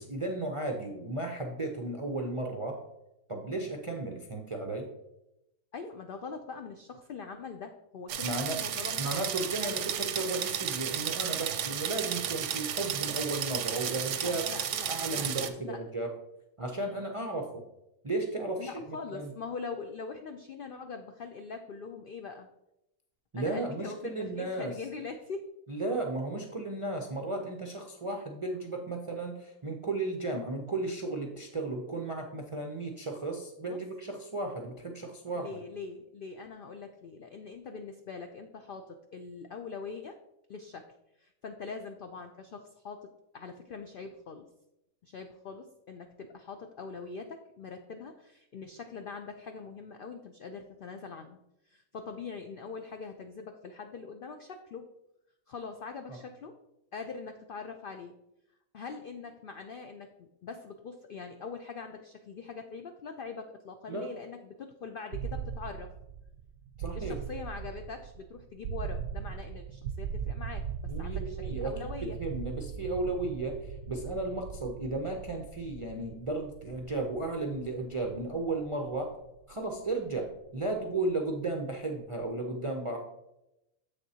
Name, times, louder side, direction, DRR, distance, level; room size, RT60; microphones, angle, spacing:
voice 1, 0.0-2.8 3.3-4.9 8.2-8.6 9.0-14.4 14.9-16.1 16.6-17.6 18.0-19.3 23.3-24.7 25.7-35.6 56.1-56.2 63.9-64.1 66.8-67.2 70.9-71.7 72.0-79.1 79.5-83.0, right 2 dB, 45° right, 2 dB, 0.4 m, -34 dB
voice 2, 5.7-9.1 9.6-9.8 14.2-15.8 18.6-22.5 23.4-25.5 33.6-33.8 35.3-40.2 40.5-40.9 41.2-44.4 45.0-51.4 51.6-54.9 55.5-56.5 56.9-58.1 58.7-65.9 66.9-72.2, left 5 dB, 85° left, 6 dB, 0.4 m, -43 dB
sound 1, 8.1-15.5, right 9 dB, 65° right, 0.8 m, -33 dB
sound 2, 65.1-81.0, right 7 dB, 90° right, 1.1 m, -40 dB
7.5 x 6.6 x 2.8 m, 0.87 s
omnidirectional pair, 1.5 m